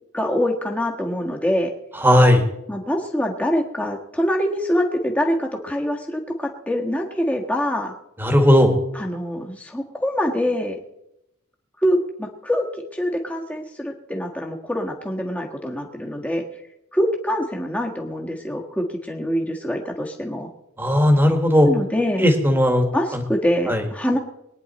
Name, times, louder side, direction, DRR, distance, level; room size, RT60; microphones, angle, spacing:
voice 1, 0.1-1.7 2.7-7.9 8.9-10.8 11.8-16.4 16.9-20.5 21.7-22.3 22.9-24.2, equal, 5° left, 0 dB, 1.5 m, -24 dB
voice 2, 2.0-2.4 8.2-8.8 20.8-21.7 22.2-22.8 23.1-23.2 23.7-23.8, left 1 dB, 10° right, 4 dB, 1.7 m, -16 dB
22.0 x 9.8 x 4.2 m, 0.88 s
head